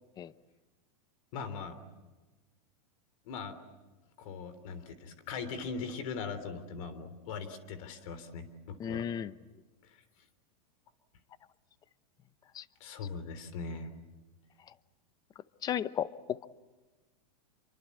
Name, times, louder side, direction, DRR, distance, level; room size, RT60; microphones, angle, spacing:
voice 1, 1.3-1.8 3.3-3.6 4.2-9.1 9.9-10.0 12.8-13.9, left 5 dB, 55° left, 12 dB, 3.4 m, -40 dB
voice 2, 8.8-9.3 12.5-12.6 15.6-16.5, left 9 dB, 20° left, 15 dB, 0.8 m, -34 dB
27.5 x 24.5 x 8.5 m, 1.2 s
supercardioid pair, 150°, 20 cm